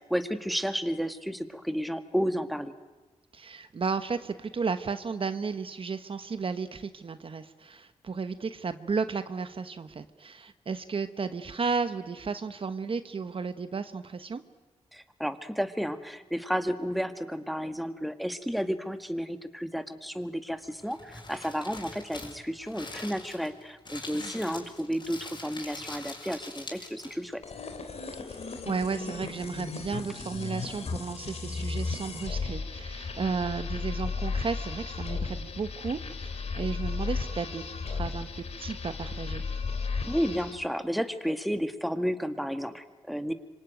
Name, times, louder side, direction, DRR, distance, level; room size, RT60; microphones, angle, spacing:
voice 1, 0.0-2.7 14.9-27.4 40.1-43.3, equal, ahead, 8 dB, 1.8 m, -32 dB
voice 2, 3.3-14.4 24.1-24.3 28.3-28.4 28.6-39.4, right 5 dB, 50° right, 10 dB, 1.2 m, -33 dB
Crumpling crinkling, 20.6-27.3, left 2 dB, 40° left, 6.6 m, -43 dB
sound 1, 27.4-40.6, left 4 dB, 65° left, 3.3 m, -35 dB
26.0 x 25.0 x 9.2 m, 1.2 s
cardioid pair, 70°, 12 cm